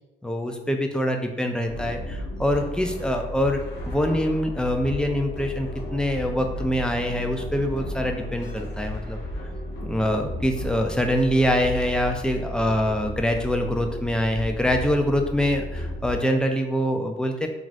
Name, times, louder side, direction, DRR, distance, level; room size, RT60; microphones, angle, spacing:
voice 1, 0.2-9.2 9.8-17.5, equal, 5° left, 4 dB, 0.3 m, -24 dB
sound 1, 1.7-16.1, left 1 dB, 60° left, 0.9 m, -34 dB
2.5 x 2.5 x 3.1 m, 0.95 s
cardioid pair, 90°, 20 cm